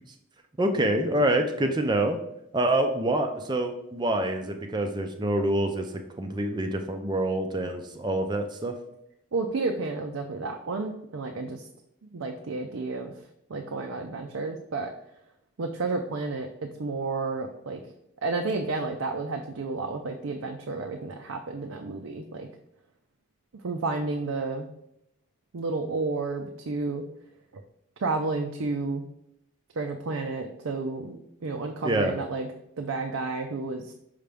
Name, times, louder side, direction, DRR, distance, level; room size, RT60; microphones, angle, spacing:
voice 1, 0.6-2.2 2.5-5.9 6.2-8.8 31.8-32.1, right 1 dB, 20° right, 5 dB, 0.4 m, -26 dB
voice 2, 9.3-11.7 12.0-13.1 13.5-14.9 15.6-17.8 18.2-22.5 23.6-24.7 25.5-27.0 28.0-29.0 29.8-32.5 32.8-33.9, right 3 dB, 85° right, 3 dB, 0.5 m, -31 dB
5.6 x 5.2 x 3.4 m, 0.79 s
head